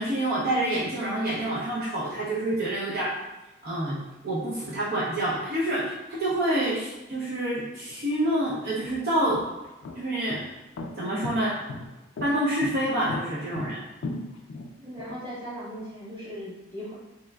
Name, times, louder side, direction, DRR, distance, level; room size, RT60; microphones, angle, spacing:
voice 1, 0.0-3.1 3.6-9.4 9.9-10.4 11.0-11.6 12.2-13.8, right 1 dB, 55° right, -7 dB, 0.6 m, -27 dB
sound 1, 7.9-8.0 8.7-15.2, left 2 dB, 90° left, 0.3 m, -37 dB
voice 2, 14.8-16.9, equal, 25° right, -9 dB, 1.5 m, -38 dB
3.3 x 2.9 x 2.2 m, 1.0 s
head